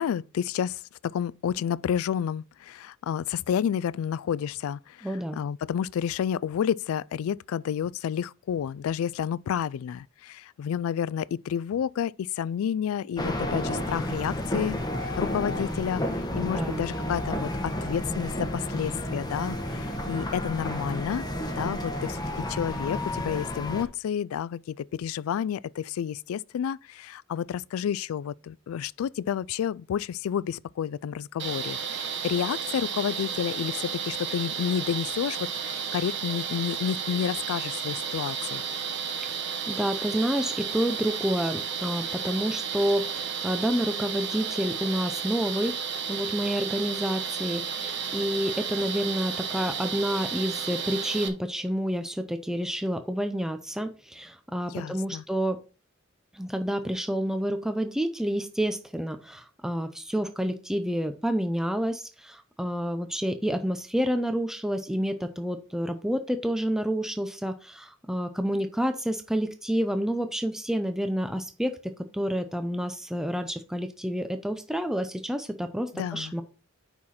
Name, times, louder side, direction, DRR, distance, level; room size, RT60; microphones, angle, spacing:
voice 1, 0.0-21.3 21.6-22.2 22.5-35.4 35.6-38.6 54.7-55.2 75.9-76.3, left 8 dB, 80° left, 0.3 m, -30 dB
voice 2, 5.0-5.4 16.4-16.8 39.7-45.8 46.1-55.6 56.3-76.4, equal, ahead, 0.5 m, -29 dB
sound 1, 13.2-23.8, left 1 dB, 20° left, 1.3 m, -31 dB
sound 2, 31.4-51.3, right 7 dB, 60° right, 1.2 m, -32 dB
8.7 x 5.7 x 4.2 m
head